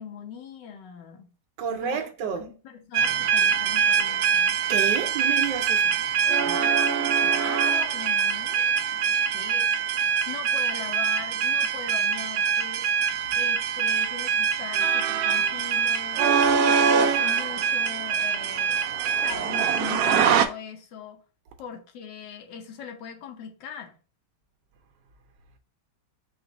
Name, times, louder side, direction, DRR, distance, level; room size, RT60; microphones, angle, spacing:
voice 1, 0.0-1.3 1.7-2.0 2.4-4.6 6.4-8.7 9.3-9.7 10.0-12.9 13.3-16.3 16.5-18.8 19.2-21.2 21.6-23.9, left 7 dB, 80° left, 1.5 m, -40 dB
voice 2, 1.6-2.4 4.7-5.9, right 7 dB, 90° right, 1.5 m, -30 dB
sound 1, 2.9-20.5, right 7 dB, 70° right, 1.0 m, -23 dB
4.8 x 2.5 x 3.9 m
omnidirectional pair, 1.9 m